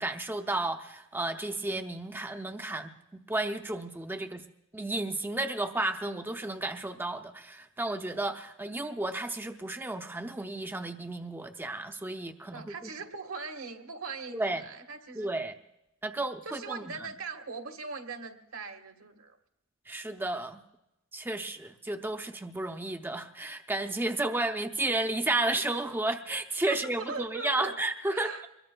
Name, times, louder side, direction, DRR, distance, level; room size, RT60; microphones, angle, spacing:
voice 1, 0.0-2.9 3.3-4.4 4.7-12.9 14.3-14.6 15.2-15.5 16.0-17.1 19.9-20.6 21.1-28.5, right 2 dB, 10° right, 6 dB, 0.5 m, -32 dB
voice 2, 12.5-15.3 16.4-19.4 26.7-27.7 28.1-28.5, right 4 dB, 80° right, 5 dB, 1.5 m, -40 dB
24.0 x 21.0 x 2.2 m, 0.90 s
head